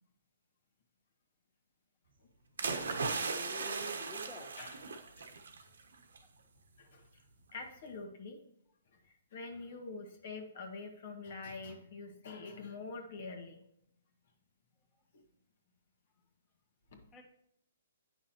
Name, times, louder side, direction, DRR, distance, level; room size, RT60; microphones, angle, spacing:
sound 1, 2.6-5.6 5.9-6.2, right 4 dB, 90° right, 1.2 m, -37 dB
voice 1, 2.9-4.5 17.1-17.2, equal, 20° left, -2 dB, 1.4 m, -48 dB
voice 2, 5.2-5.7 6.8-7.2 7.5-8.4 8.9-13.6 15.1-15.2 16.9-17.1, left 3 dB, 55° left, 3 dB, 1.5 m, -46 dB
9.2 x 6.0 x 3.0 m, 0.73 s
hypercardioid pair, 155°, 0 cm